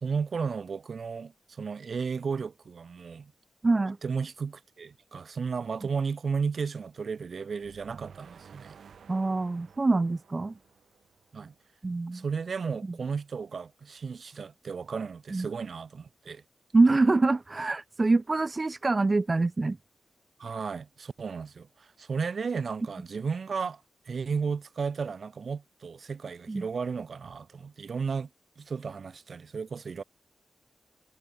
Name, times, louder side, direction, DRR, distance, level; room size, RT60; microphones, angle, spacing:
voice 1, 0.0-3.3 4.0-8.8 11.3-11.5 12.1-16.4 20.4-28.3 28.6-30.0, right 5 dB, 55° right, 1.5 m, -34 dB
voice 2, 3.6-4.0 9.1-10.6 11.8-12.2 15.3-15.5 16.7-19.8 26.5-26.6, right 3 dB, 30° right, 0.6 m, -25 dB
sound 1, 7.6-11.7, right 7 dB, 80° right, 5.3 m, -53 dB
wide cardioid pair, 115°, 0 cm